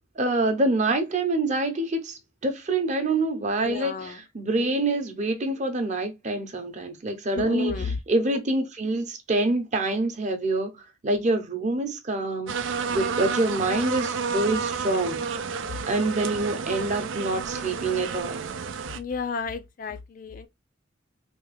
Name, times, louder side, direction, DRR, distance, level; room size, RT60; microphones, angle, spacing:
voice 1, 0.2-10.7 11.0-12.5 12.9-15.2 15.9-18.5, right 2 dB, 35° right, 0.7 m, -26 dB
voice 2, 3.6-4.1 7.4-8.0 18.9-20.5, left 5 dB, 45° left, 0.4 m, -32 dB
sound 1, 12.5-19.0, right 5 dB, 80° right, 0.4 m, -30 dB
3.4 x 2.3 x 3.2 m
head